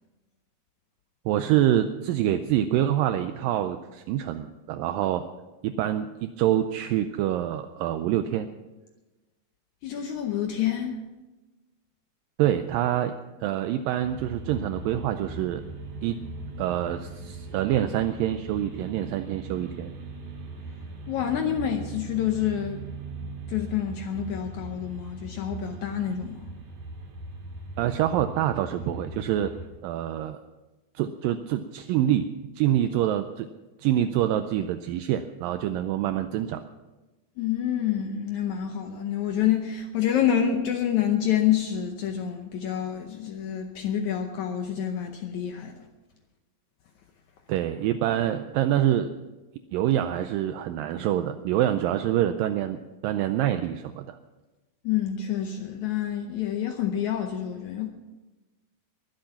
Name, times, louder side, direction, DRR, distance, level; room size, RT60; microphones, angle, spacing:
voice 1, 1.3-5.2 5.6-8.5 12.4-13.2 13.4-15.6 16.0-16.2 16.6-19.9 27.8-29.5 29.8-30.4 31.0-33.5 33.8-36.6 47.5-49.1 49.7-54.2, right 11 dB, 80° right, 9 dB, 2.1 m, -26 dB
voice 2, 9.8-11.0 21.1-22.9 23.5-26.5 37.4-45.9 54.8-57.9, left 9 dB, 85° left, 5 dB, 1.7 m, -27 dB
sound 1, 14.0-29.7, right 2 dB, 55° right, 3.8 m, -40 dB
22.0 x 7.9 x 5.8 m, 1.1 s
omnidirectional pair, 4.4 m